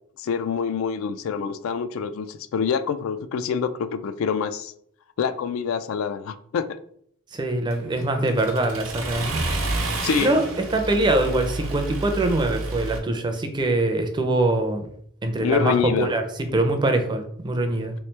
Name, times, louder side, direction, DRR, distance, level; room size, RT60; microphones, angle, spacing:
voice 1, 0.2-4.7 5.2-6.7 10.0-10.3 15.4-16.1, left 6 dB, 75° left, 11 dB, 0.3 m, -26 dB
voice 2, 7.3-9.9 10.2-14.9 15.2-16.2 16.5-17.9, right 2 dB, 20° right, 6 dB, 0.4 m, -23 dB
Accelerating revving vroom, 7.7-13.0, right 2 dB, 90° right, 0.7 m, -30 dB
3.2 x 3.1 x 3.2 m, 0.67 s
head